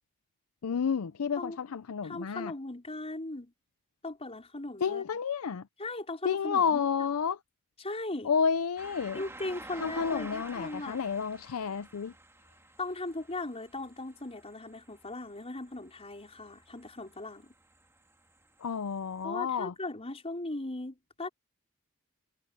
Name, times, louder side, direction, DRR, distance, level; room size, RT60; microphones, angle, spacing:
voice 1, 0.6-2.5 4.8-5.7 6.2-7.4 8.2-9.2 9.8-12.1 18.6-19.7, left 6 dB, 70° left, 0.5 m, -30 dB
voice 2, 2.0-3.5 4.0-5.0 5.8-6.8 7.8-8.3 9.1-11.0 12.8-17.5 19.2-21.3, left 2 dB, 30° left, 4.8 m, -38 dB
sound 1, 8.8-19.2, right 2 dB, 10° right, 2.9 m, -52 dB
head